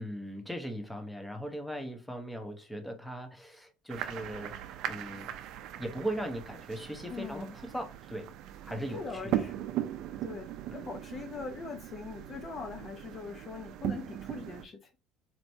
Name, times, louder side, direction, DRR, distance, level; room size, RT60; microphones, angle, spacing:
voice 1, 0.0-4.5 4.9-5.3 5.8-8.3 8.6-9.5 10.7-10.9, right 1 dB, 5° left, 0.9 m, -39 dB
sound 1, 3.9-14.6, right 11 dB, 65° right, 0.5 m, -39 dB
voice 2, 7.1-7.6 8.9-9.7 10.2-14.9, left 4 dB, 35° left, 0.6 m, -41 dB
4.5 x 2.9 x 2.6 m
cardioid pair, 120°, 0 cm